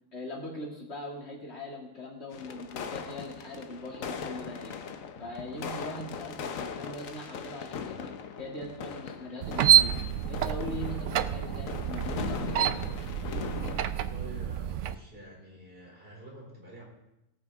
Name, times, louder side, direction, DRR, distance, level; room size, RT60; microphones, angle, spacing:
voice 1, 0.1-4.7 5.2-8.1 8.4-10.0 10.3-12.8, left 1 dB, 55° left, -2 dB, 2.7 m, -41 dB
sound 1, 2.3-13.9, left 6 dB, 85° left, 1.3 m, -39 dB
sound 2, 9.4-15.0, right 10 dB, 70° right, 0.9 m, -27 dB
voice 2, 13.8-16.8, equal, 45° right, -1 dB, 3.8 m, -48 dB
19.0 x 8.8 x 3.5 m, 0.91 s
omnidirectional pair, 1.4 m